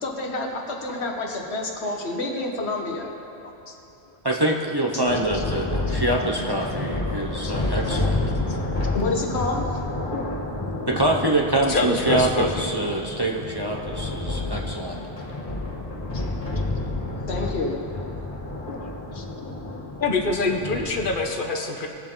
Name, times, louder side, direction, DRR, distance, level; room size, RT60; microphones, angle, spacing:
voice 1, 0.0-3.1 8.9-9.6 17.3-17.8, left 2 dB, 80° left, 1 dB, 1.5 m, -28 dB
voice 2, 3.4-3.7 4.3-4.4 5.3-5.4 7.4-7.5 11.7-12.7 19.1-19.2 20.0-21.9, left 3 dB, 55° left, 3 dB, 1.2 m, -26 dB
voice 3, 4.2-8.2 10.9-15.0, right 2 dB, 25° right, -1 dB, 0.7 m, -25 dB
Thunder, 5.1-21.3, left 2 dB, 35° left, 2.1 m, -29 dB
20.0 x 7.1 x 3.8 m, 2.9 s
omnidirectional pair, 1.1 m